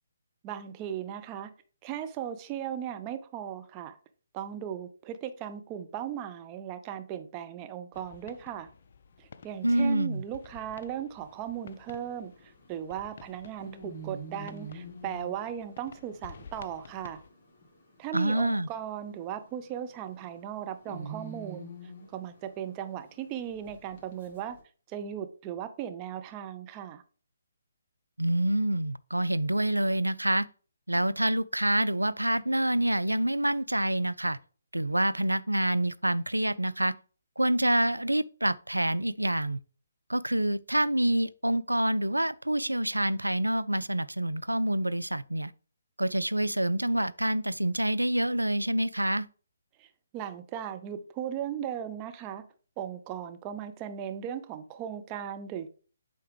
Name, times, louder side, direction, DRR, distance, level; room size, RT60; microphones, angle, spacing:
voice 1, 0.4-1.5 1.8-4.0 4.3-8.7 9.2-17.2 18.0-21.7 22.1-24.6 24.9-27.0 49.8-49.9 50.1-52.4 52.8-55.7, right 9 dB, 25° right, 0.6 m, -37 dB
sound 1, 7.9-17.3, left 5 dB, 50° left, 0.5 m, -52 dB
voice 2, 9.6-10.2 18.1-18.7 28.2-30.5 30.9-34.4 34.7-36.9 37.4-39.6 40.1-45.5 46.0-49.3, right 1 dB, 90° right, 0.3 m, -27 dB
sound 2, 11.2-24.6, right 2 dB, 30° left, 2.1 m, -48 dB
7.7 x 4.6 x 3.2 m
figure-of-eight pair, 140°, 0 cm